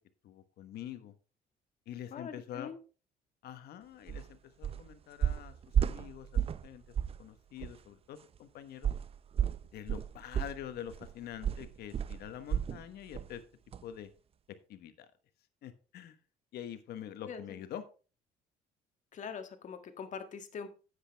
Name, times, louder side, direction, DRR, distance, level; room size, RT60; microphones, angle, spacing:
voice 1, 0.2-1.1 1.9-2.7 3.4-6.8 7.2-8.9 9.7-13.4 13.8-14.1 14.7-15.1 15.6-16.2 16.5-17.8, left 10 dB, 70° left, 10 dB, 1.2 m, -45 dB
voice 2, 2.1-2.8 17.3-17.6 19.1-20.9, left 6 dB, 45° left, 7 dB, 1.6 m, -43 dB
sound 1, 4.1-4.3 4.6-4.9 5.2-6.7 6.9-7.2 7.6-7.7 8.8-12.8 13.1-13.4 13.7-13.8, right 8 dB, 35° right, 0.5 m, -32 dB
10.0 x 8.3 x 3.4 m, 0.36 s
cardioid pair, 110°, 17 cm